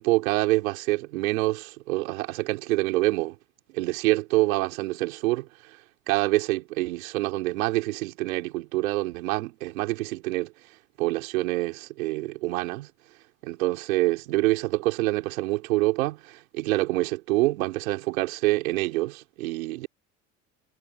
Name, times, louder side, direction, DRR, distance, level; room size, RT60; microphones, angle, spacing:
voice 1, 0.0-3.4 3.7-5.8 6.1-10.5 11.0-12.9 13.4-19.9, right 20 dB, 80° right, 3.9 m, -26 dB
hypercardioid pair, 80°, 40 cm